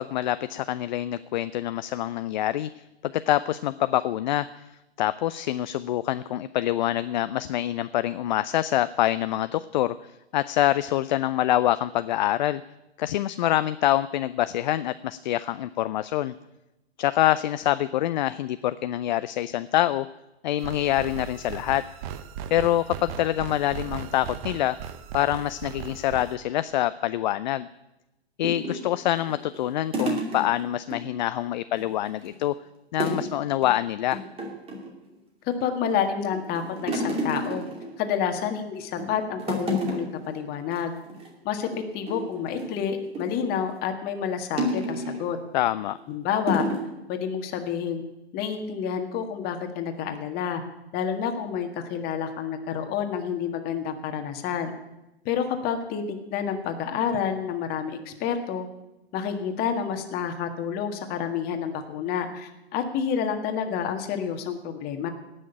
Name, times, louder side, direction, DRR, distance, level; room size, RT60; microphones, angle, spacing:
voice 1, 0.0-2.7 3.0-4.6 5.0-12.6 13.0-16.3 17.0-20.1 20.4-21.8 22.5-24.8 25.1-27.7 28.4-32.5 32.9-34.2 45.5-46.0, left 13 dB, 45° left, 14 dB, 0.5 m, -25 dB
sound 1, 20.6-26.3, right 8 dB, 35° right, 0.9 m, -38 dB
sound 2, 28.4-31.0 31.3-31.5 31.8-32.4 33.0-33.3 33.6-33.8 34.1-34.9 35.5-36.0 36.3-38.5 38.8-39.1 39.4-40.3 40.6-40.8 41.1-41.3 41.7-43.5 44.6-45.3 45.8-46.0 46.5-46.9, equal, 20° right, 2.7 m, -31 dB
voice 2, 35.4-37.6 38.0-40.9 41.4-41.7 41.9-45.4 46.1-46.7 47.1-48.0 48.3-50.6 50.9-54.7 55.2-58.7 59.1-65.1, left 7 dB, 30° left, 6 dB, 1.7 m, -29 dB
17.5 x 6.5 x 9.0 m, 0.98 s
figure-of-eight pair, 110°, 32 cm